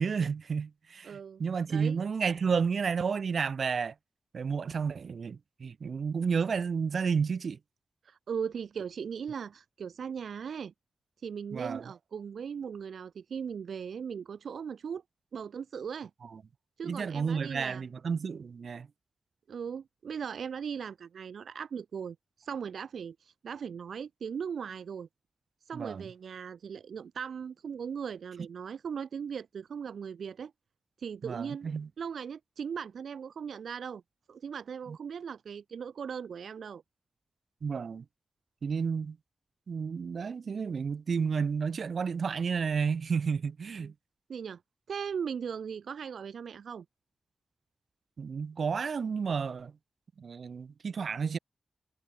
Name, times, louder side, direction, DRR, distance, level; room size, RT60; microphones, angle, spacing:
voice 1, 0.0-3.9 4.3-7.6 11.5-11.8 16.3-16.4 16.8-18.9 25.7-26.1 31.2-31.9 34.9-35.0 37.6-38.0 38.6-39.2 39.7-43.9 48.2-49.7 50.2-51.4, right 6 dB, 70° right, 7.6 m, -31 dB
voice 2, 1.0-1.4 1.7-2.0 8.0-10.7 11.2-15.0 15.3-16.1 16.8-17.8 19.5-25.1 25.7-30.5 31.0-31.7 32.0-34.0 34.3-36.8 43.8-43.9 44.3-44.6 44.9-46.8, right 7 dB, 90° right, 6.2 m, -38 dB
cardioid pair, 75°, 0 cm